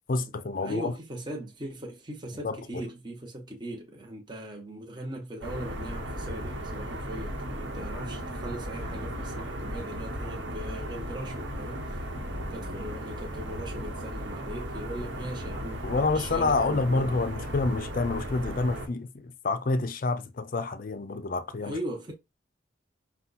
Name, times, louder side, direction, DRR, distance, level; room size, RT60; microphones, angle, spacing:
voice 1, 0.1-1.0 2.4-2.9 15.8-21.8, left 3 dB, 45° left, 0.5 m, -28 dB
voice 2, 0.6-12.0 12.5-17.1 21.6-22.1, right 1 dB, 20° right, 0.9 m, -39 dB
sound 1, 5.4-18.9, equal, 60° right, 1.2 m, -36 dB
5.6 x 2.4 x 4.0 m
head